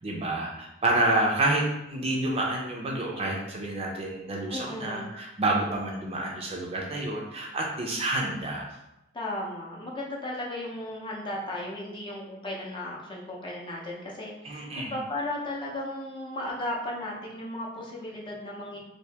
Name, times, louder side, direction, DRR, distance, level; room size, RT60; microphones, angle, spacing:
voice 1, 0.0-8.6 14.4-14.9, right 2 dB, 30° right, -1 dB, 0.5 m, -28 dB
voice 2, 4.5-5.2 9.1-18.8, left 1 dB, 25° left, -3 dB, 0.6 m, -35 dB
2.8 x 2.7 x 3.3 m, 0.89 s
head